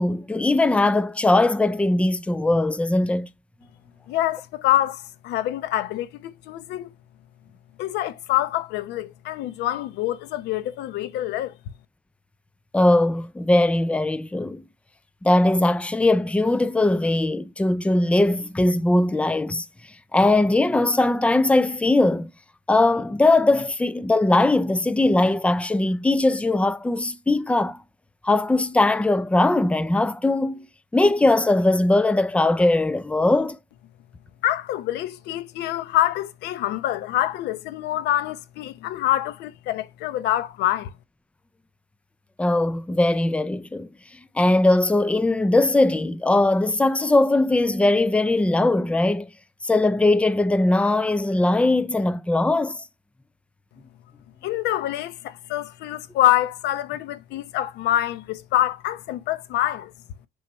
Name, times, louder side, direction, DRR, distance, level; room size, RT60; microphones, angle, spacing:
voice 1, 0.0-3.3 12.7-14.6 15.2-19.6 20.1-22.3 22.7-27.8 28.2-30.7 30.9-33.6 42.4-43.9 44.4-49.3 49.6-52.8, left 2 dB, 5° left, 0.5 m, -20 dB
voice 2, 4.1-6.9 7.8-11.5 34.4-40.9 54.4-59.9, left 13 dB, 85° left, 0.8 m, -25 dB
7.2 x 4.7 x 3.0 m
cardioid pair, 110°, 17 cm